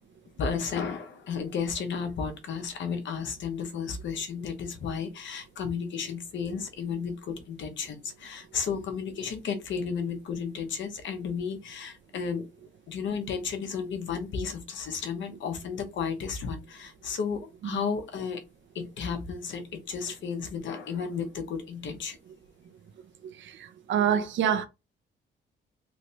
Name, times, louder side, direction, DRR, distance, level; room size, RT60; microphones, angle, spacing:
voice 1, 0.4-12.5 12.9-18.4 18.7-22.2, left 6 dB, 70° left, 1.0 m, -33 dB
voice 2, 23.2-24.7, right 8 dB, 70° right, 0.7 m, -27 dB
3.3 x 2.7 x 3.3 m
cardioid pair, 90°, 20 cm